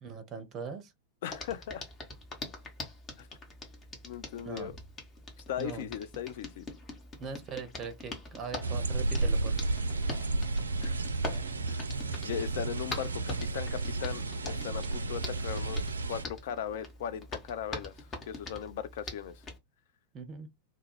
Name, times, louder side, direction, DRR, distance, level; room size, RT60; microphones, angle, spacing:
voice 1, 0.0-0.9 4.4-4.7 5.6-5.9 7.2-9.5 20.1-20.5, right 5 dB, 30° right, 0.6 m, -40 dB
voice 2, 1.2-1.9 3.2-3.3 4.0-4.8 5.4-6.6 10.8-10.9 11.7-11.8 12.2-15.8 16.1-19.4, left 9 dB, 55° left, 0.3 m, -38 dB
Hands, 1.3-19.6, left 2 dB, 25° left, 0.8 m, -44 dB
sound 1, 8.6-16.2, right 3 dB, 75° right, 0.3 m, -32 dB
2.2 x 2.1 x 3.0 m
figure-of-eight pair, 90°, 0 cm